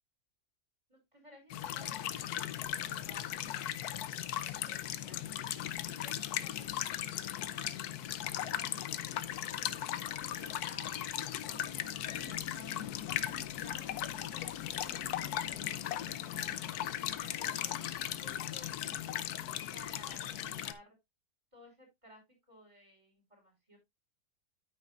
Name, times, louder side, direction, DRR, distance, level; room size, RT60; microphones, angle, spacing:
voice 1, 0.9-5.3 5.9-7.8 8.3-11.0 11.5-12.8 13.2-16.6 17.1-19.2 19.7-21.0 21.5-22.2 22.5-23.8, equal, 20° right, 1 dB, 5.2 m, -58 dB
sound 1, 1.5-20.7, left 11 dB, 85° left, 1.2 m, -37 dB
9.5 x 9.1 x 2.4 m, 0.20 s
omnidirectional pair, 1.6 m